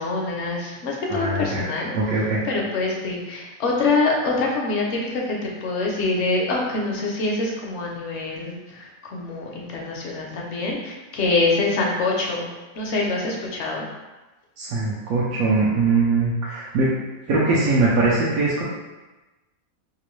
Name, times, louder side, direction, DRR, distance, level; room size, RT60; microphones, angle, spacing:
voice 1, 0.0-1.9 2.4-12.5 12.8-13.9, left 3 dB, 65° left, -2 dB, 0.8 m, -25 dB
voice 2, 1.1-2.4 14.6-16.9 17.3-18.6, right 3 dB, 80° right, -7 dB, 1.0 m, -21 dB
3.0 x 2.4 x 3.0 m, 1.1 s
omnidirectional pair, 1.5 m